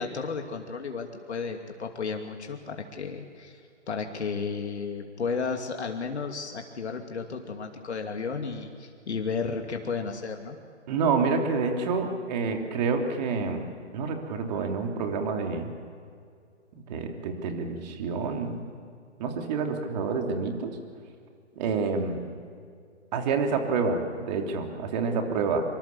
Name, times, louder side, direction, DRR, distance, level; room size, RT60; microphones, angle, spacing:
voice 1, 0.0-3.6 3.9-10.6, left 5 dB, 70° left, 3 dB, 2.7 m, -33 dB
voice 2, 10.9-13.6 13.9-15.7 16.7-18.6 19.2-20.7 21.6-22.2 23.1-25.6, right 4 dB, 35° right, 3 dB, 3.3 m, -28 dB
25.5 x 25.0 x 7.2 m, 2.2 s
figure-of-eight pair, 140°, 35 cm